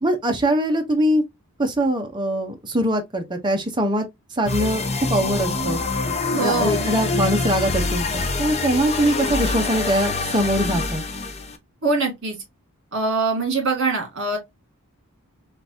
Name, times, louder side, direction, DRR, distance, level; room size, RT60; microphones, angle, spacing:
voice 1, 0.0-1.2 1.6-4.0 4.4-5.8 6.4-11.0, right 1 dB, 20° right, 0.8 m, -22 dB
sound 1, 4.4-11.6, left 3 dB, 30° left, 0.6 m, -25 dB
voice 2, 6.3-6.9 11.8-12.4 12.9-14.4, right 3 dB, 55° right, 2.1 m, -23 dB
3.8 x 3.5 x 2.7 m
head